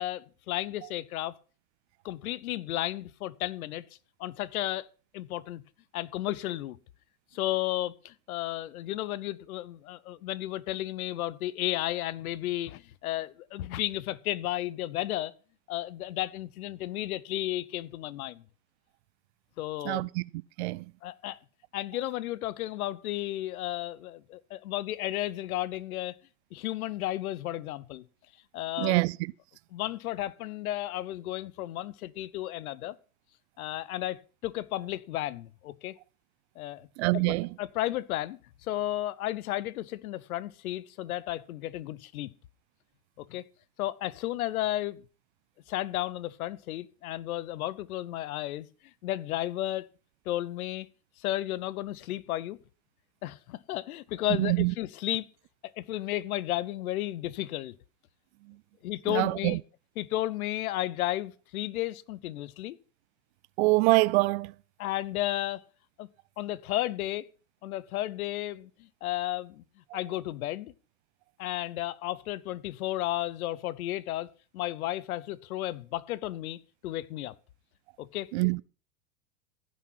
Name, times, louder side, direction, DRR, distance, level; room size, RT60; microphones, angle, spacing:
voice 1, 0.0-1.3 2.0-3.8 4.2-4.9 5.1-5.6 5.9-6.8 7.3-15.3 15.7-18.4 19.6-20.1 21.0-21.4 21.7-26.2 26.5-28.0 28.5-29.0 29.7-33.0 33.6-36.0 36.6-36.9 37.1-42.3 43.2-43.4 43.8-45.0 45.7-48.7 49.0-49.9 50.3-50.9 51.2-52.6 53.2-55.3 55.8-57.8 58.8-59.6 60.0-62.8 64.8-65.7 66.0-66.1 66.4-67.3 67.6-69.6 69.9-70.7 71.4-77.3 78.0-78.3, left 15 dB, 70° left, 0.9 m, -33 dB
voice 2, 19.9-20.2 20.6-20.8 28.8-29.2 37.0-37.5 54.4-54.7 59.1-59.6 63.6-64.5 69.9-70.0 78.3-78.6, right 23 dB, 50° right, 0.5 m, -25 dB
15.5 x 6.3 x 5.7 m
hypercardioid pair, 105°, 45 cm